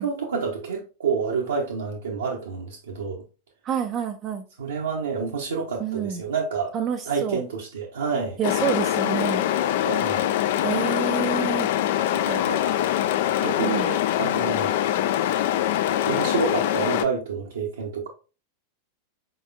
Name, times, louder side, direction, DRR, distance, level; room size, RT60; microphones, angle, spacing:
voice 1, 0.0-3.2 4.6-6.7 7.0-8.4 9.8-10.2 12.4-12.9 13.4-14.7 16.0-18.1, right 5 dB, 70° right, 0.7 m, -28 dB
voice 2, 3.6-4.5 5.8-6.2 6.7-7.4 8.4-9.5 10.6-11.7 11.9-12.9 13.6-13.9, right 8 dB, 30° right, 0.4 m, -29 dB
sound 1, 8.4-17.1, left 12 dB, 55° left, 0.3 m, -23 dB
4.9 x 3.9 x 2.3 m
figure-of-eight pair, 90°, 0 cm